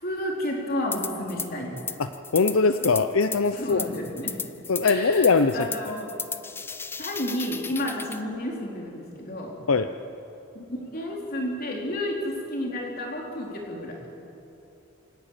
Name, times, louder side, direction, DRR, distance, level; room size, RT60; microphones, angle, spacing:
voice 1, 0.0-1.8 3.5-4.3 4.8-6.1 7.0-9.5 10.5-14.0, left 1 dB, 45° left, -1 dB, 4.0 m, -31 dB
sound 1, 0.9-1.5 1.8-8.2, left 5 dB, 10° left, 0.4 m, -35 dB
voice 2, 2.0-3.9 4.7-5.7 9.7-9.9, left 4 dB, 80° left, 9 dB, 0.6 m, -22 dB
27.5 x 12.0 x 8.9 m, 3.0 s
head